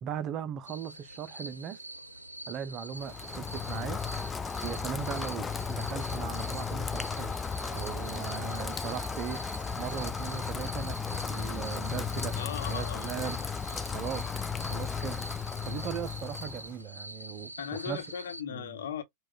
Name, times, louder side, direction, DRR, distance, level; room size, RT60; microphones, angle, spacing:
voice 1, 0.0-1.8 2.5-4.0 4.6-7.3 7.7-12.4 12.7-13.6 13.9-14.3 14.7-17.5 17.9-18.0 18.5-18.8, right 8 dB, 35° right, 0.6 m, -38 dB
sound 1, 0.7-18.4, right 1 dB, 85° right, 0.5 m, -45 dB
Rain, 3.0-16.8, left 6 dB, 15° left, 0.3 m, -35 dB
voice 2, 12.4-13.3 13.7-13.8 17.6-19.0, left 9 dB, 60° left, 1.0 m, -38 dB
4.8 x 2.3 x 2.3 m
figure-of-eight pair, 90°, 0 cm